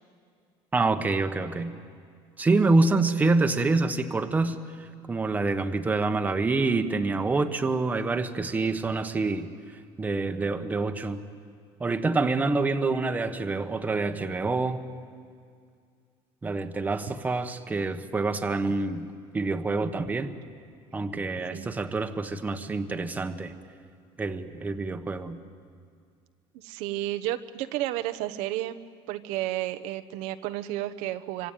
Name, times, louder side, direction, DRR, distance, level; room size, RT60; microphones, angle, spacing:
voice 1, 0.7-1.7 2.4-9.5 10.0-11.2 11.8-14.8 16.4-19.1 19.3-20.3 20.9-23.5 24.2-25.4, right 3 dB, 15° right, 7 dB, 1.2 m, -26 dB
voice 2, 21.5-21.8 26.5-28.8 29.1-31.5, right 14 dB, 80° right, 10 dB, 1.1 m, -32 dB
25.5 x 25.5 x 9.2 m, 2.2 s
cardioid pair, 150°, 11 cm